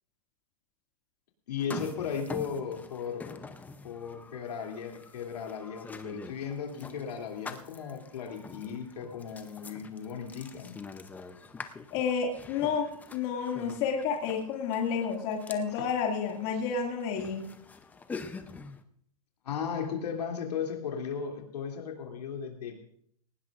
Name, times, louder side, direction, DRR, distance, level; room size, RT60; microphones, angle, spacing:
voice 1, 1.5-3.4 3.8-10.7 15.8-15.9 19.4-23.0, left 7 dB, 80° left, 1 dB, 2.9 m, -36 dB
sound 1, 1.6-18.8, left 4 dB, 10° left, 0.6 m, -45 dB
voice 2, 11.9-12.9 13.1-17.4, left 6 dB, 40° left, 1 dB, 2.3 m, -30 dB
19.0 x 17.0 x 2.5 m, 0.63 s
hypercardioid pair, 150°, 20 cm